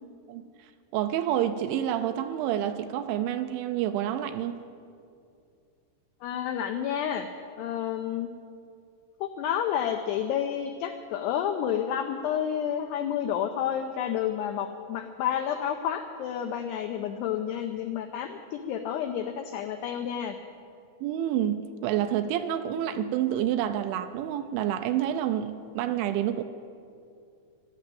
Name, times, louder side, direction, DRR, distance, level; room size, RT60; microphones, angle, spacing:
voice 1, 0.9-4.6 21.0-26.4, right 11 dB, 85° right, 9 dB, 2.8 m, -28 dB
voice 2, 6.2-7.3 7.6-8.3 9.2-20.4, left 9 dB, 90° left, 6 dB, 2.3 m, -30 dB
15.0 x 12.0 x 7.6 m, 2.4 s
omnidirectional pair, 5.6 m